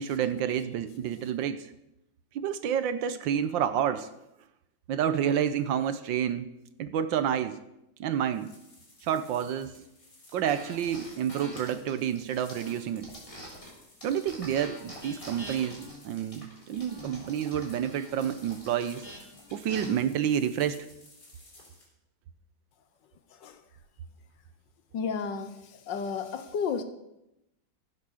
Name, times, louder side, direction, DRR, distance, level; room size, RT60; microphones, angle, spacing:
voice 1, 0.0-1.7 2.3-4.1 4.9-6.5 6.8-7.6 8.0-8.5 9.0-9.8 10.3-13.1 14.0-19.0 19.5-20.9, right 9 dB, 70° right, 12 dB, 1.3 m, -29 dB
sound 1, 8.2-21.9, left 2 dB, 50° left, 4.4 m, -56 dB
sound 2, 10.5-13.7 14.0-19.8, equal, 15° left, 3.4 m, -45 dB
voice 2, 24.9-26.8, left 6 dB, 65° left, 9 dB, 1.5 m, -32 dB
15.5 x 7.4 x 6.4 m, 0.87 s
omnidirectional pair, 2.3 m